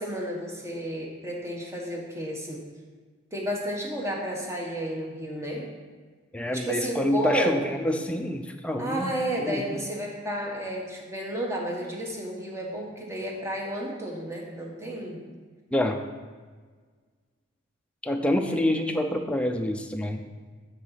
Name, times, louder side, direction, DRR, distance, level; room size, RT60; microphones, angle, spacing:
voice 1, 0.0-2.6 3.3-5.7 6.5-7.6 8.8-15.2 18.5-18.6, equal, 15° right, -1 dB, 1.2 m, -32 dB
voice 2, 6.3-9.1 9.4-9.8 15.7-16.0 18.0-20.2, left 1 dB, 5° left, 4 dB, 0.5 m, -27 dB
9.6 x 4.0 x 5.7 m, 1.5 s
head